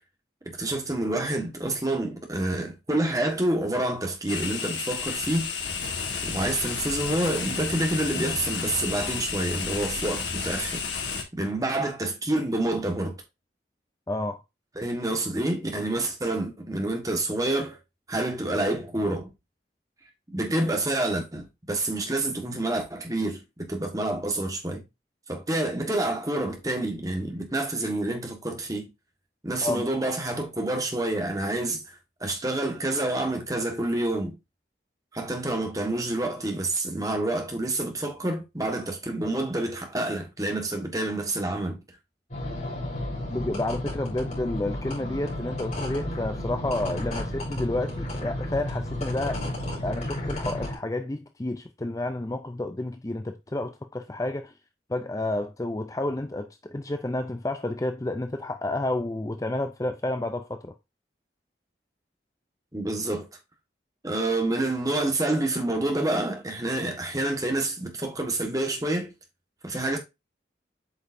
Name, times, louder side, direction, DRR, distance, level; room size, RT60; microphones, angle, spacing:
voice 1, 0.4-5.5 6.2-10.8 11.3-13.2 14.7-17.8 18.1-19.3 20.3-24.8 25.3-28.9 29.4-34.4 35.1-41.8 62.7-63.3 64.0-69.1 69.6-70.0, right 2 dB, 20° right, 1.6 m, -28 dB
sound 1, 4.3-11.2, left 5 dB, 85° left, 1.9 m, -31 dB
voice 2, 14.1-14.4 29.6-29.8 43.3-49.4 49.8-54.5 54.9-60.7, left 2 dB, 20° left, 0.5 m, -30 dB
sound 2, 42.3-50.7, left 1 dB, 40° left, 4.2 m, -32 dB
8.0 x 5.3 x 2.6 m
head